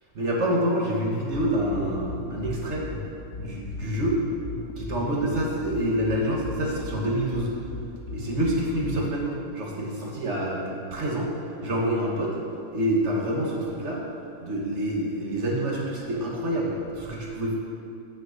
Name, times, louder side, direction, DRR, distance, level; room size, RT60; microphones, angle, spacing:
voice 1, 0.2-2.9 3.4-4.2 4.8-7.5 8.1-11.3 11.6-12.3 12.7-14.0 14.4-17.5, right 1 dB, 50° right, -2 dB, 1.3 m, -27 dB
sound 1, 1.3-9.3, left 4 dB, 70° left, 0.5 m, -37 dB
6.8 x 4.7 x 6.4 m, 2.5 s
omnidirectional pair, 1.7 m